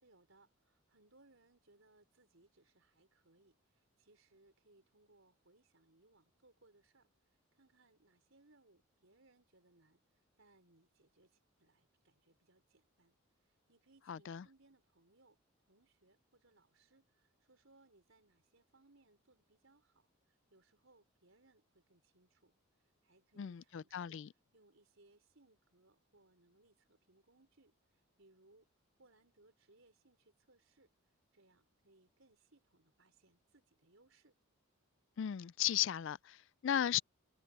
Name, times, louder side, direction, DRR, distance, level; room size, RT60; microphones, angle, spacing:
voice 1, 0.0-7.1 7.5-13.2 13.5-15.4 15.7-22.6 23.0-24.2 24.5-27.7 28.2-28.7 29.0-30.9 31.3-34.3, right 2 dB, 65° right, 4.3 m, -69 dB
voice 2, 14.1-14.4 23.4-24.3 35.2-37.0, left 10 dB, 55° left, 0.3 m, -36 dB
head